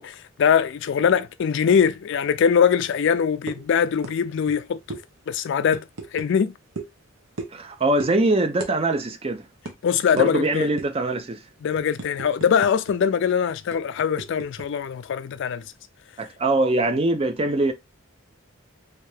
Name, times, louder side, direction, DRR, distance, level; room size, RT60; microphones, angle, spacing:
voice 1, 0.0-5.0 5.3-5.8 6.1-6.5 9.8-10.7 11.6-15.6, left 7 dB, 60° left, 0.3 m, -22 dB
sound 1, 3.5-3.7 4.0-4.2 4.4-4.6 4.9-5.0 5.7-6.3 6.8-7.0 7.4-7.7 8.0-8.2 8.6-8.7 9.0-9.2 9.7-9.8 10.2-10.3 10.8-11.0 11.5-12.9 13.2-13.3 13.7-14.7, right 3 dB, 75° right, 0.9 m, -35 dB
voice 2, 7.5-9.5 10.1-11.4 16.2-17.7, right 2 dB, 30° right, 0.4 m, -22 dB
3.3 x 2.7 x 3.2 m
head